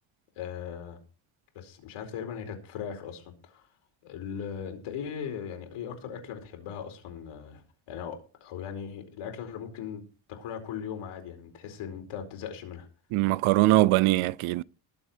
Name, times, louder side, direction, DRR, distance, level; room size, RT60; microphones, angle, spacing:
voice 1, 0.4-1.0 1.5-3.7 4.0-7.6 7.9-10.0 10.3-12.9, left 8 dB, 80° left, 4.6 m, -38 dB
voice 2, 13.1-14.6, right 17 dB, 75° right, 0.6 m, -22 dB
20.0 x 7.8 x 4.5 m
cardioid pair, 150°, 50 cm